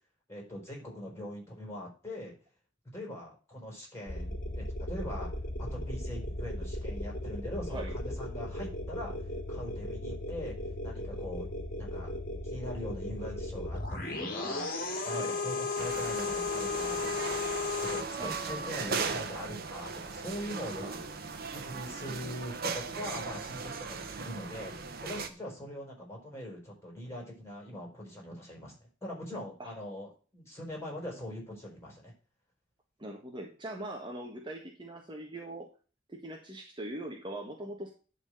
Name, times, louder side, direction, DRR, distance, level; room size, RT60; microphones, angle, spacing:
voice 1, 0.3-2.3 2.9-5.3 5.7-9.1 9.5-10.5 10.8-11.5 11.8-12.1 12.4-17.4 17.9-21.1 21.5-24.7 25.0-28.7 29.0-32.1, left 1 dB, 15° left, 0 dB, 5.5 m, -42 dB
sound 1, 4.1-18.0, left 2 dB, 50° left, 2.3 m, -36 dB
sound 2, 15.8-25.3, right 5 dB, 55° right, 1.2 m, -38 dB
voice 2, 18.2-19.2 20.8-21.2 29.6-29.7 33.0-35.7 36.1-37.9, right 1 dB, 25° right, 2 dB, 1.3 m, -41 dB
11.0 x 4.3 x 6.6 m, 0.37 s
head